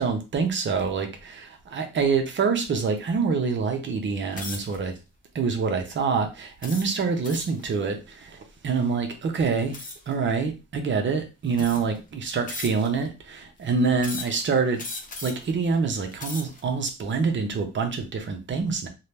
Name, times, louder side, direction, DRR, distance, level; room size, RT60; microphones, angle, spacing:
voice 1, 0.0-4.9 5.3-14.8 15.2-18.9, right 5 dB, 40° right, 0.6 m, -26 dB
sound 1, 4.3-4.8 5.4-5.7 6.6-7.6 9.7-10.1 11.0-11.1 11.5-12.0 12.5-13.1 14.0-14.4 14.8-15.5 16.0-16.6, left 3 dB, 25° left, 0.5 m, -37 dB
2.7 x 2.2 x 3.2 m
cardioid pair, 150°, 31 cm